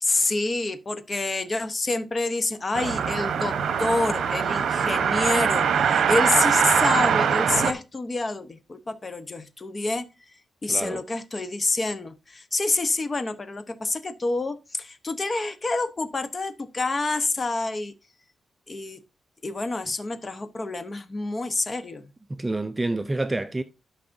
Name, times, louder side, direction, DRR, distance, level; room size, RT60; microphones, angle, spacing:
voice 1, 0.0-10.1 10.6-17.9 18.7-19.0 19.4-22.0, left 2 dB, 30° left, 0.8 m, -27 dB
sound 1, 2.7-7.7, right 7 dB, 80° right, 0.8 m, -22 dB
voice 2, 10.7-11.0 22.3-23.6, right 2 dB, 15° right, 0.4 m, -28 dB
12.0 x 5.6 x 2.6 m
wide cardioid pair, 140°, 0 cm